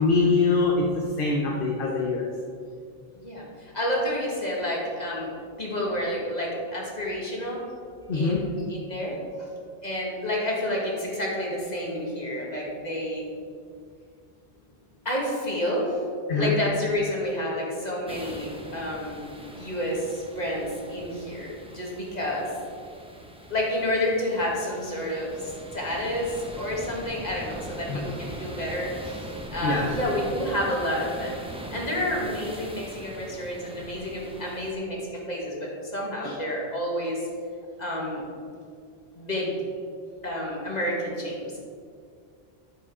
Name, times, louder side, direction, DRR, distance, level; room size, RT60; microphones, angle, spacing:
voice 1, 0.0-2.3 8.1-8.5 16.3-16.5 27.9-28.0 29.6-29.9 36.2-36.4, left 3 dB, 60° left, 0 dB, 1.1 m, -24 dB
voice 2, 3.2-5.3 5.6-7.6 8.1-9.2 9.8-13.3 15.1-16.0 16.3-19.2 19.6-22.5 23.5-29.2 29.5-31.4 31.7-37.2 37.8-38.2 39.2-39.5 40.2-41.6, left 1 dB, 45° left, -3 dB, 2.2 m, -29 dB
sound 1, 18.1-34.7, right 1 dB, 5° right, 0.9 m, -42 dB
10.0 x 7.3 x 4.9 m, 2.2 s
omnidirectional pair, 1.0 m